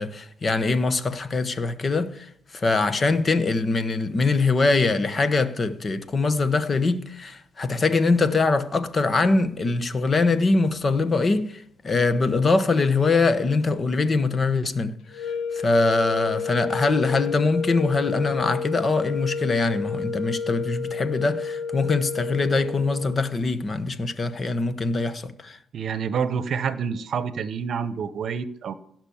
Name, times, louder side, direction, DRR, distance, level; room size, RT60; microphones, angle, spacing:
voice 1, 0.0-25.6, left 3 dB, 35° left, 1.1 m, -23 dB
sound 1, 15.1-23.3, left 5 dB, 85° left, 1.4 m, -30 dB
voice 2, 25.7-28.7, right 6 dB, 60° right, 0.9 m, -28 dB
16.5 x 6.1 x 7.2 m
cardioid pair, 90°, 0 cm